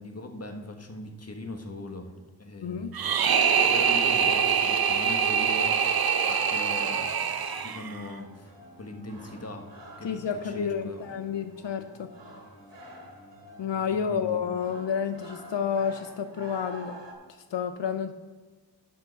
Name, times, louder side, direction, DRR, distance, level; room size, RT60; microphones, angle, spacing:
voice 1, 0.0-3.0 3.6-5.8 6.2-7.1 7.6-11.0 14.1-14.4, left 2 dB, 35° left, 5 dB, 1.4 m, -40 dB
voice 2, 2.6-3.0 10.0-12.1 13.6-17.0 17.3-18.1, left 7 dB, 85° left, 9 dB, 0.7 m, -30 dB
sound 1, 2.9-8.1, right 7 dB, 60° right, 0.8 m, -24 dB
sound 2, 4.0-17.1, right 1 dB, 90° right, 2.5 m, -48 dB
12.0 x 6.5 x 5.8 m, 1.4 s
wide cardioid pair, 115°, 42 cm